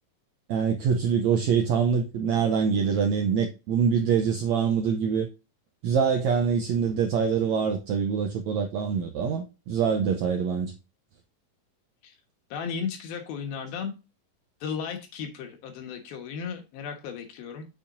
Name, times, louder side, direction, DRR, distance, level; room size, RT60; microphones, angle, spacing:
voice 1, 0.5-5.3 5.8-10.7, right 6 dB, 85° right, 1.6 m, -24 dB
voice 2, 12.5-13.9 14.6-17.7, left 6 dB, 90° left, 3.3 m, -35 dB
7.2 x 7.1 x 2.6 m
omnidirectional pair, 4.1 m